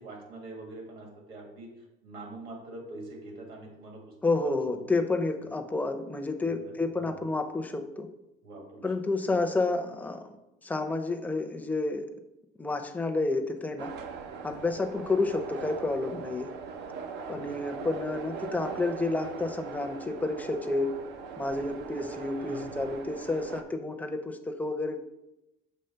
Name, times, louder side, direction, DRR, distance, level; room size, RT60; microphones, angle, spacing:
voice 1, 0.0-1.7 2.0-4.9 6.4-7.1 8.4-8.9 9.2-9.4 17.3-17.5 22.4-22.8, right 2 dB, 65° right, 1 dB, 2.0 m, -45 dB
voice 2, 4.2-8.1 8.8-10.3 10.6-12.1 12.6-13.9 14.4-16.5 17.3-20.9 21.4-25.0, left 3 dB, 10° left, 5 dB, 0.5 m, -30 dB
sound 1, 13.8-23.6, right 5 dB, 85° right, 0.7 m, -40 dB
6.6 x 3.0 x 5.6 m, 0.94 s
cardioid pair, 135°, 17 cm